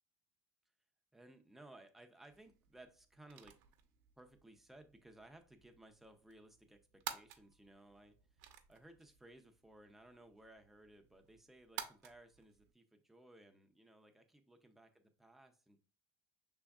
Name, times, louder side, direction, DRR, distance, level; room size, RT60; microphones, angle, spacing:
voice 1, 1.1-3.6 4.2-15.8, right 1 dB, 5° right, 5 dB, 0.4 m, -60 dB
sound 1, 2.3-12.7, right 10 dB, 80° right, 0.6 m, -54 dB
6.0 x 3.5 x 2.3 m, 0.36 s
cardioid pair, 165°, 9 cm